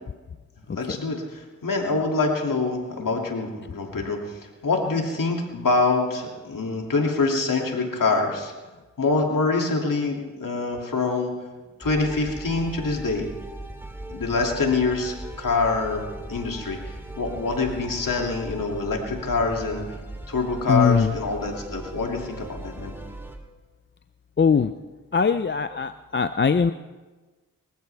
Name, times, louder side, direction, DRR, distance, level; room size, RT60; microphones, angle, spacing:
voice 1, 0.7-4.2 4.6-8.5 9.0-11.3 11.8-13.3 14.1-16.8 17.2-19.8 20.3-22.9, left 3 dB, 70° left, 0 dB, 2.7 m, -25 dB
sound 1, 11.8-23.4, right 1 dB, 5° right, 2.4 m, -38 dB
voice 2, 20.7-21.1 24.4-24.7 25.1-26.7, left 6 dB, 35° left, 10 dB, 0.5 m, -21 dB
25.0 x 14.5 x 3.5 m, 1.3 s
cardioid pair, 55°, 34 cm